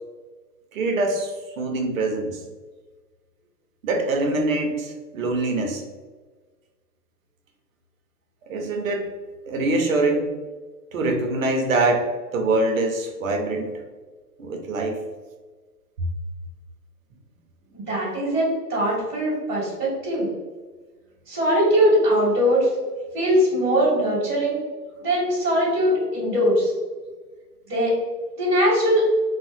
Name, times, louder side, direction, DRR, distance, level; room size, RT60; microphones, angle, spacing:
voice 1, 0.7-2.4 3.8-5.8 8.5-9.1 9.5-10.3 10.9-13.8 14.4-15.0, right 2 dB, 55° right, 3 dB, 0.6 m, -24 dB
voice 2, 17.7-20.3 21.3-22.7 23.1-24.6 25.0-26.7 27.7-27.9 28.4-29.0, equal, 10° left, -17 dB, 0.4 m, -21 dB
3.1 x 2.0 x 3.0 m, 1.4 s
hypercardioid pair, 160°, 49 cm